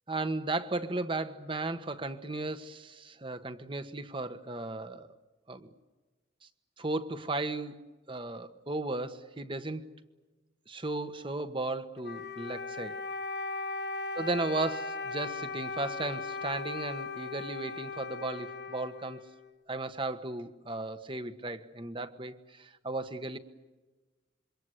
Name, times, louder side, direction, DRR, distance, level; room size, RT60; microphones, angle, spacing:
voice 1, 0.1-5.1 5.5-5.7 6.8-7.7 8.1-9.8 10.7-13.0 14.1-19.2 19.7-23.4, right 2 dB, 25° right, 10 dB, 1.4 m, -35 dB
Wind instrument woodwind instrument, 12.0-19.6, left 3 dB, 60° left, 1.4 m, -38 dB
27.0 x 24.0 x 8.2 m, 1.2 s
head